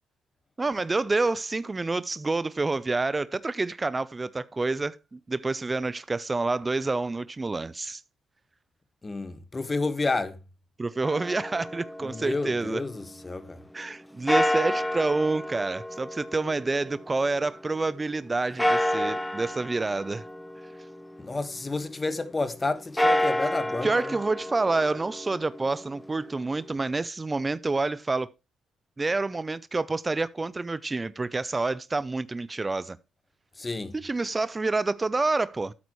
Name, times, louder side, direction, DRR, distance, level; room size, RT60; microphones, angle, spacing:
voice 1, 0.6-8.0 10.8-12.8 13.7-20.2 23.8-28.3 29.0-33.0 33.9-35.7, right 3 dB, 20° right, 0.5 m, -28 dB
voice 2, 9.0-10.4 12.0-13.6 21.2-24.1 33.6-33.9, left 3 dB, 25° left, 1.4 m, -30 dB
sound 1, 11.0-13.1 14.3-17.6 18.6-21.6 22.8-26.8, left 1 dB, 5° left, 1.0 m, -30 dB
12.5 x 9.4 x 3.1 m
cardioid pair, 90°, 0 cm